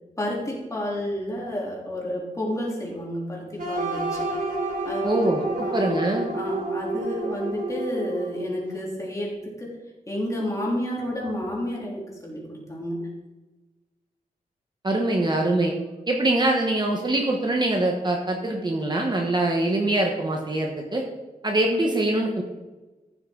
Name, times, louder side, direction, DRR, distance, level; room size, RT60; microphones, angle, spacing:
voice 1, 0.2-4.3 4.9-5.3 5.6-5.9 6.3-9.7 10.1-13.0, equal, 20° left, -4 dB, 3.4 m, -30 dB
sound 1, 3.6-8.5, right 2 dB, 70° right, 4.4 m, -29 dB
voice 2, 5.0-6.3 14.8-15.7 16.1-21.0 21.4-22.4, right 1 dB, 30° right, 1 dB, 1.3 m, -23 dB
14.5 x 7.9 x 4.0 m, 1.2 s
wide cardioid pair, 135°, 15 cm